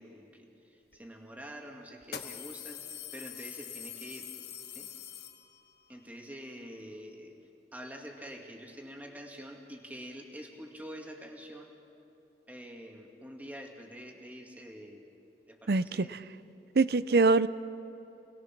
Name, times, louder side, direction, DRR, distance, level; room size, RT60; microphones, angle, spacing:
voice 1, 0.0-4.3 4.7-4.9 5.9-7.3 7.7-11.7 12.5-15.1 15.5-16.2, equal, 10° right, 1 dB, 2.1 m, -46 dB
sound 1, 0.9-1.0 2.0-5.8, left 9 dB, 65° left, 1.3 m, -44 dB
voice 2, 15.7-16.2 16.8-17.5, right 3 dB, 60° right, 16 dB, 0.5 m, -24 dB
28.0 x 20.5 x 6.0 m, 2.9 s
head